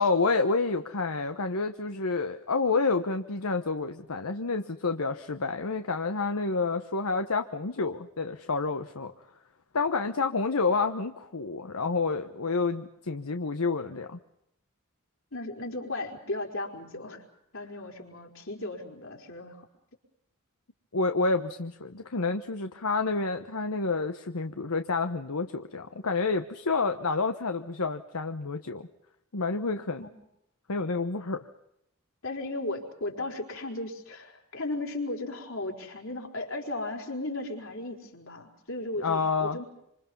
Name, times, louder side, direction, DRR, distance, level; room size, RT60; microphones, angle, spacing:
voice 1, 0.0-9.1 9.7-14.2 20.9-28.9 29.3-30.0 30.7-31.4 39.0-39.6, left 4 dB, 85° left, 7 dB, 1.1 m, -29 dB
voice 2, 15.3-17.2 17.5-19.7 30.0-30.1 32.2-39.6, left 2 dB, 65° left, 1 dB, 4.7 m, -36 dB
27.0 x 26.5 x 5.5 m, 0.81 s
head